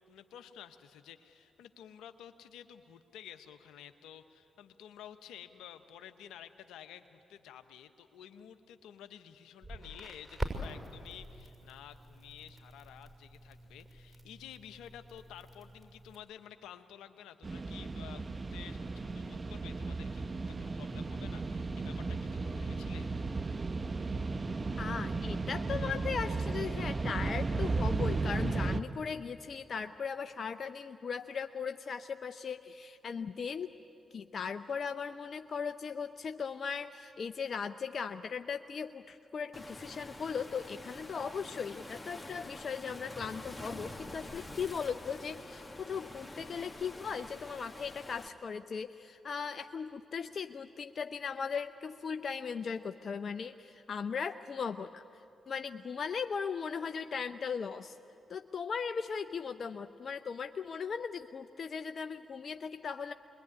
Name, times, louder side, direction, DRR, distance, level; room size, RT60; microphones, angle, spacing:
voice 1, 0.0-23.1, left 10 dB, 80° left, 9 dB, 1.0 m, -52 dB
Crackle, 9.6-16.2, right 1 dB, 20° right, 6.4 m, -44 dB
sound 1, 17.4-28.8, right 3 dB, 40° right, 1.1 m, -35 dB
voice 2, 24.8-33.7 34.1-55.0 55.5-58.0 58.3-63.1, left 6 dB, 60° left, 8 dB, 0.6 m, -38 dB
Waves surf, 39.5-48.3, left 1 dB, 15° left, 2.2 m, -47 dB
26.0 x 21.5 x 9.8 m, 2.9 s
hypercardioid pair, 40°, 0 cm